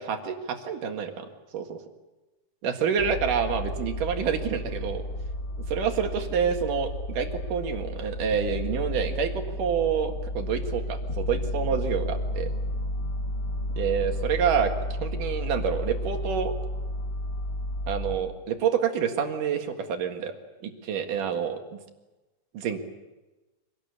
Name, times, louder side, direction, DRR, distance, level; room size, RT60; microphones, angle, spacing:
voice 1, 0.0-1.8 2.6-5.0 5.7-12.5 13.8-14.7 15.0-16.5 17.9-20.3 20.6-21.8 22.5-22.8, right 7 dB, 80° right, 4 dB, 3.4 m, -28 dB
sound 1, 3.0-18.2, left 1 dB, 35° left, 2.9 m, -32 dB
25.5 x 19.0 x 8.3 m, 1.1 s
omnidirectional pair, 3.7 m